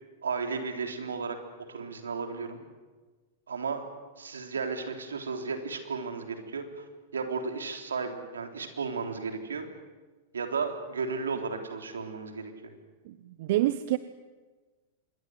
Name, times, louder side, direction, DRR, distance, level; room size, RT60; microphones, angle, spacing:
voice 1, 0.2-1.4 1.7-2.6 3.5-3.9 4.2-6.8 7.1-9.7 10.3-12.5, right 5 dB, 85° right, 5 dB, 3.6 m, -34 dB
voice 2, 13.1-14.0, right 15 dB, 60° right, 13 dB, 1.0 m, -27 dB
26.0 x 22.0 x 8.0 m, 1.3 s
hypercardioid pair, 105°, 0 cm